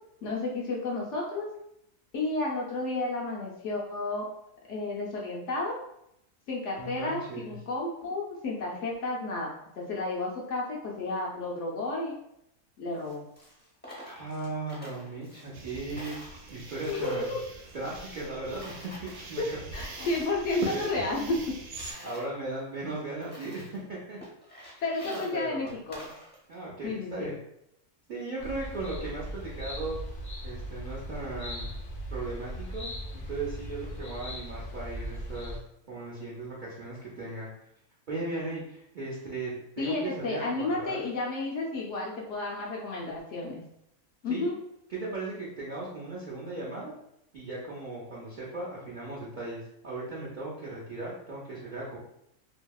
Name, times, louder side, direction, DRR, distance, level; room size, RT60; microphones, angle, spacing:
voice 1, 0.2-1.5 2.1-4.3 4.7-5.8 6.5-12.1 12.8-13.2 16.9-17.4 19.4-19.5 19.7-21.6 24.8-26.1 26.8-27.3 39.8-43.6 44.2-44.6, left 2 dB, 65° left, -3 dB, 0.8 m, -32 dB
voice 2, 6.8-7.5 14.0-16.2 16.5-17.3 17.7-18.7 19.0-19.6 20.0-20.1 20.7-20.9 22.0-23.6 23.9-24.2 24.6-24.7 25.0-25.7 26.5-27.4 28.1-30.0 30.4-31.7 32.1-35.6 35.9-37.5 38.1-41.0 44.3-44.5 44.9-46.9 47.3-52.0, right 2 dB, 60° right, -7 dB, 0.5 m, -37 dB
Coin (dropping), 12.9-15.7 16.0-18.3 18.6-20.4 20.7-22.3 22.8-22.9 23.2-23.8 24.2-26.6, equal, 10° left, 0.4 m, -49 dB
sound 1, 15.5-21.9, right 3 dB, 80° right, 1.0 m, -42 dB
sound 2, 28.4-35.6, equal, 85° left, 0.4 m, -38 dB
2.7 x 2.7 x 2.3 m, 0.78 s
omnidirectional pair, 1.6 m